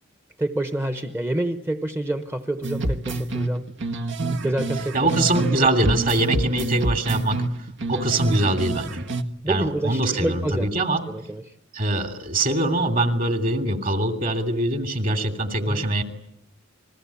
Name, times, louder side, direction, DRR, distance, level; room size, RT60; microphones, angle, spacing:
voice 1, 0.4-3.7 4.4-5.0 5.5-5.7 9.4-10.7 11.1-11.5 15.6-15.9, right 1 dB, 15° right, 8 dB, 1.0 m, -27 dB
sound 1, 2.6-5.6 5.8-9.2, right 2 dB, 65° right, 1.5 m, -27 dB
voice 2, 4.9-7.4 7.9-9.0 9.5-11.0 11.7-16.0, right 1 dB, 45° right, 7 dB, 2.9 m, -23 dB
29.5 x 21.0 x 8.5 m, 0.73 s
head